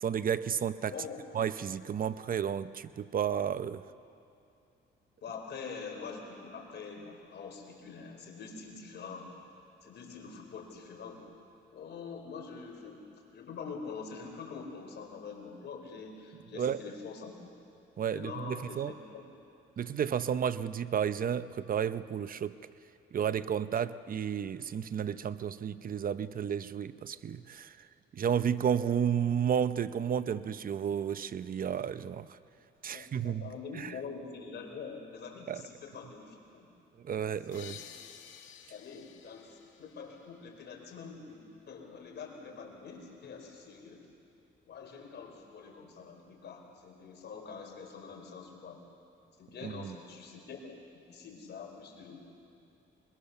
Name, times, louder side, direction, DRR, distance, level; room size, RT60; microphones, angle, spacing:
voice 1, 0.0-0.9 1.3-3.8 16.6-16.8 18.0-18.9 19.8-22.6 23.1-27.7 28.1-32.3 32.8-33.9 35.5-35.6 37.0-37.8 49.6-49.9, right 8 dB, 45° right, 14 dB, 0.7 m, -32 dB
voice 2, 0.9-1.2 5.2-9.3 9.8-11.3 11.7-13.0 13.3-17.3 18.1-19.2 32.9-36.7 37.5-37.8 38.7-44.1 44.7-48.8 49.4-50.8 51.1-52.2, left 5 dB, 60° left, 1 dB, 4.2 m, -45 dB
sound 1, 37.5-41.1, left 9 dB, 75° left, 1.6 m, -52 dB
22.0 x 21.5 x 6.9 m, 2.6 s
cardioid pair, 90°, 20 cm